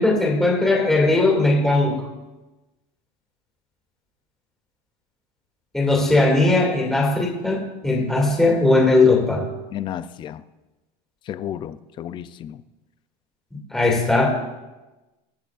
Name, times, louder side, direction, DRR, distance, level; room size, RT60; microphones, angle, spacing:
voice 1, 0.0-2.0 5.7-9.4 13.7-14.3, left 2 dB, ahead, -2 dB, 2.2 m, -18 dB
voice 2, 9.7-10.4 11.3-12.6, left 10 dB, 25° left, 13 dB, 0.4 m, -32 dB
22.5 x 10.5 x 2.4 m, 1.1 s
cardioid pair, 170°, 21 cm